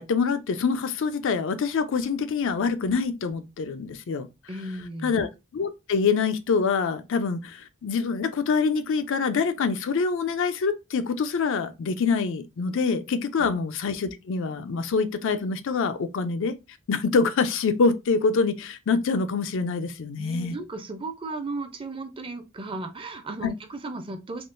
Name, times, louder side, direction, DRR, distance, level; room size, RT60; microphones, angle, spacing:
voice 1, 0.0-4.3 5.0-5.3 5.5-16.5 16.9-20.6 23.4-23.5, left 5 dB, 65° left, 0.4 m, -25 dB
voice 2, 4.5-5.1 13.4-13.5 20.2-24.4, right 2 dB, 25° right, 0.5 m, -35 dB
3.6 x 2.3 x 2.5 m
head